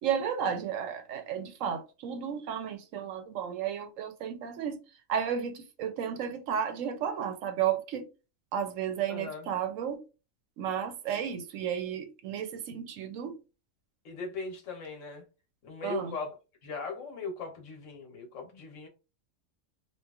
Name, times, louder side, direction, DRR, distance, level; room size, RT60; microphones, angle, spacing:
voice 1, 0.0-4.8 5.1-8.0 8.5-10.0 10.6-13.3 15.8-16.1, right 8 dB, 75° right, 1.0 m, -33 dB
voice 2, 9.1-9.5 14.0-15.2 15.6-16.3 16.6-18.9, left 4 dB, 70° left, 1.2 m, -39 dB
3.0 x 2.3 x 2.3 m
omnidirectional pair, 1.4 m